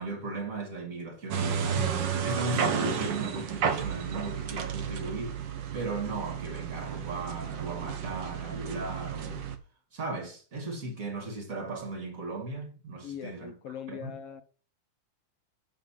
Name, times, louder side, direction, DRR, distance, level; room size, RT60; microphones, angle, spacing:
voice 1, 0.0-1.9 2.2-5.4 5.7-9.5 9.9-13.5 13.9-14.1, right 2 dB, 30° right, 2.2 m, -36 dB
sound 1, 1.3-9.6, right 7 dB, 85° right, 1.0 m, -32 dB
voice 2, 13.0-14.4, left 9 dB, 65° left, 1.6 m, -41 dB
7.3 x 5.8 x 7.3 m
omnidirectional pair, 3.4 m